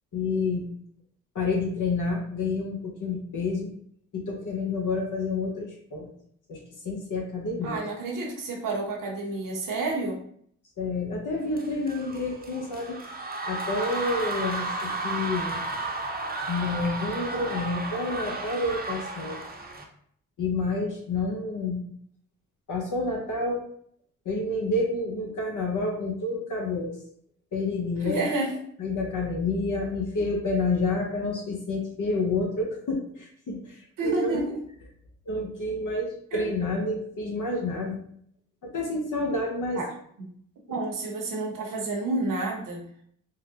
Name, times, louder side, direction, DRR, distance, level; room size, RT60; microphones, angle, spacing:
voice 1, 0.1-0.7 1.3-3.7 4.1-6.1 6.5-7.8 10.8-13.0 13.4-15.6 16.5-19.4 20.4-21.8 22.7-23.7 24.2-27.0 27.5-28.2 28.8-34.4 35.3-38.0 38.6-39.8, left 3 dB, 55° left, 0 dB, 0.8 m, -29 dB
voice 2, 7.6-10.2 28.0-28.5 34.0-34.6 36.3-36.4 39.8-39.9 40.7-42.9, right 2 dB, 60° right, -2 dB, 1.0 m, -29 dB
sound 1, 11.5-19.8, right 2 dB, 25° right, 0.8 m, -33 dB
3.8 x 2.1 x 2.8 m, 0.64 s
supercardioid pair, 45°, 36 cm